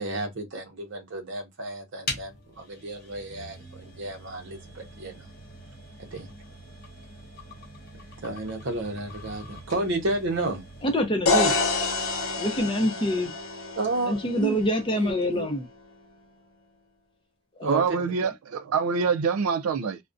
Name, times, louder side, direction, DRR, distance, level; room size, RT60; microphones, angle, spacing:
voice 1, 0.0-5.3 6.0-6.3 8.2-10.6 13.8-14.6 14.9-15.5 17.6-17.8, right 2 dB, 55° right, 0.7 m, -32 dB
sound 1, 2.0-11.2, left 1 dB, 45° left, 1.0 m, -42 dB
voice 2, 10.8-11.5 12.4-13.3 14.1-15.6 17.6-17.7, equal, 25° left, 0.5 m, -25 dB
sound 2, 11.3-15.1, left 3 dB, 70° left, 0.5 m, -28 dB
voice 3, 17.6-20.0, right 5 dB, 85° right, 0.4 m, -25 dB
2.3 x 2.1 x 2.5 m
head